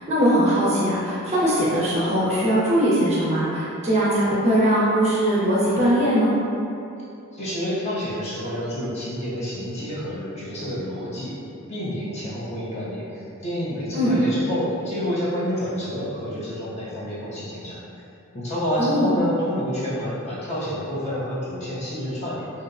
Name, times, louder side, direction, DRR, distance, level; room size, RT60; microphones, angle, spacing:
voice 1, 0.0-6.4 13.9-14.2 18.8-19.2, equal, 30° right, -8 dB, 0.5 m, -20 dB
voice 2, 7.3-11.4 11.7-17.8 18.3-22.5, equal, 30° left, -9 dB, 0.5 m, -28 dB
2.6 x 2.1 x 2.4 m, 2.7 s
head